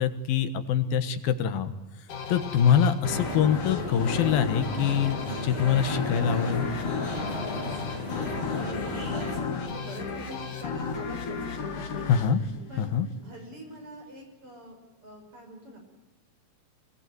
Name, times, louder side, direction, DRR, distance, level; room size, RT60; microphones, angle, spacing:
voice 1, 0.0-1.7 2.3-6.7 12.1-12.4 12.8-13.1, left 8 dB, 80° left, 10 dB, 3.1 m, -24 dB
sound 1, 2.1-13.3, left 5 dB, 60° left, 3.8 m, -34 dB
sound 2, 3.0-9.4, left 1 dB, 15° left, 7.3 m, -35 dB
voice 2, 8.1-11.4 11.7-12.1 12.7-14.8 15.0-15.8, right 1 dB, 35° right, 2 dB, 6.9 m, -44 dB
24.5 x 18.5 x 9.4 m, 1.0 s
omnidirectional pair, 4.2 m